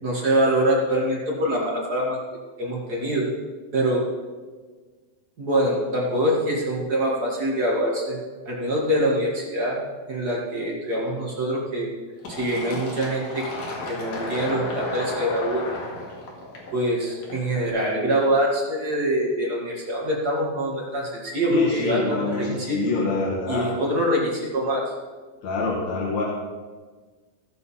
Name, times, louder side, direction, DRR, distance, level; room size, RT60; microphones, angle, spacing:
voice 1, 0.0-2.2 2.6-3.3 3.7-4.0 5.4-8.2 8.5-9.8 10.1-11.9 12.3-13.4 13.9-15.6 16.7-22.8 23.5-24.8, right 1 dB, 35° right, -3 dB, 2.1 m, -24 dB
Fill (with liquid), 12.2-17.6, left 1 dB, 90° left, 3.5 m, -33 dB
voice 2, 21.5-23.7 25.4-26.2, left 3 dB, 70° left, -4 dB, 2.7 m, -25 dB
16.5 x 6.7 x 4.2 m, 1.4 s
omnidirectional pair, 3.3 m